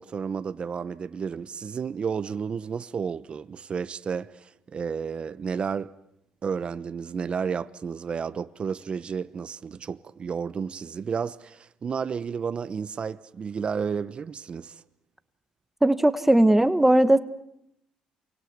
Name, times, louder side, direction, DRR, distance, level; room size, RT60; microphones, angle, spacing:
voice 1, 0.0-5.9 6.4-14.8, right 6 dB, 45° right, 1.0 m, -32 dB
voice 2, 15.8-17.2, right 1 dB, 10° right, 1.3 m, -18 dB
28.5 x 24.0 x 8.1 m
supercardioid pair, 70°, 3 cm